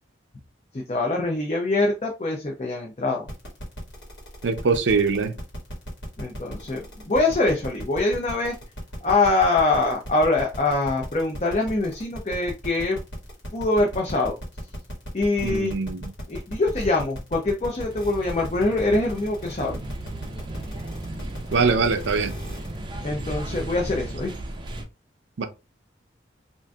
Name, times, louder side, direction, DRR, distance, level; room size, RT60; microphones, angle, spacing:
voice 1, 0.7-3.3 6.2-8.5 9.0-13.0 13.5-14.3 15.1-15.7 16.3-19.8 23.0-24.3, left 2 dB, 35° left, 0.5 m, -24 dB
sound 1, 3.3-22.8, equal, 75° left, 1.7 m, -37 dB
voice 2, 4.4-5.3 15.4-16.1 21.5-22.4 25.4-25.5, right 4 dB, 80° right, 0.5 m, -22 dB
sound 2, 17.8-24.8, right 1 dB, 25° right, 0.4 m, -35 dB
3.7 x 2.5 x 2.2 m
head